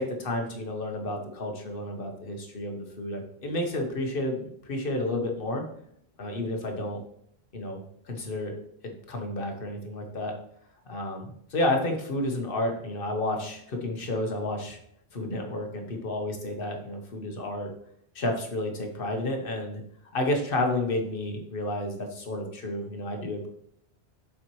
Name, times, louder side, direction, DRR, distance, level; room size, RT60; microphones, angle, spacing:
voice 1, 0.0-4.4 4.7-5.6 6.2-7.0 7.5-8.6 8.8-10.3 10.9-14.8 15.1-17.7 18.1-19.8 20.1-23.5, left 1 dB, 55° left, 3 dB, 1.2 m, -31 dB
7.1 x 5.0 x 3.1 m, 0.70 s
omnidirectional pair, 1.1 m